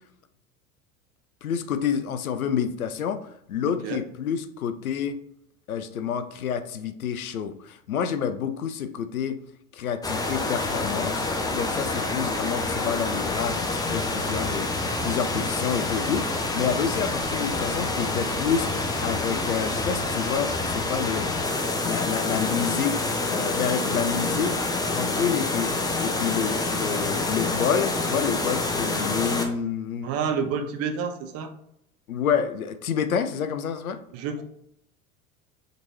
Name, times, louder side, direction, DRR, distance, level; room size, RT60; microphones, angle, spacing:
voice 1, 1.4-5.2 5.7-9.4 9.7-11.2 11.5-14.7 15.0-21.3 21.8-24.6 24.9-25.7 26.0-30.1 32.1-34.0, left 7 dB, 80° left, 10 dB, 0.5 m, -28 dB
sound 1, 10.0-29.4, left 2 dB, 10° left, 0.6 m, -27 dB
voice 2, 30.0-31.5 34.1-34.4, right 6 dB, 35° right, 7 dB, 0.6 m, -28 dB
5.2 x 3.0 x 2.6 m, 0.74 s
figure-of-eight pair, 75°, 42 cm